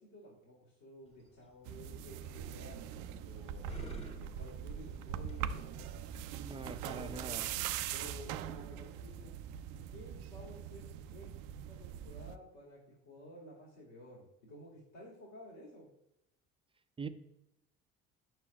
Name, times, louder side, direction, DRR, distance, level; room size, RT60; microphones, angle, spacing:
voice 1, 0.0-3.6 4.1-7.4 7.9-9.3 9.9-11.3 11.7-15.9, equal, 60° left, -4 dB, 2.1 m, -53 dB
sound 1, 1.0-7.1, equal, 20° left, 1.6 m, -56 dB
sound 2, 1.7-12.4, right 9 dB, 75° right, 0.5 m, -42 dB
voice 2, 6.3-7.5 17.0-17.1, right 4 dB, 15° right, 10 dB, 0.6 m, -43 dB
8.5 x 5.9 x 2.3 m, 0.80 s
hypercardioid pair, 65°, 31 cm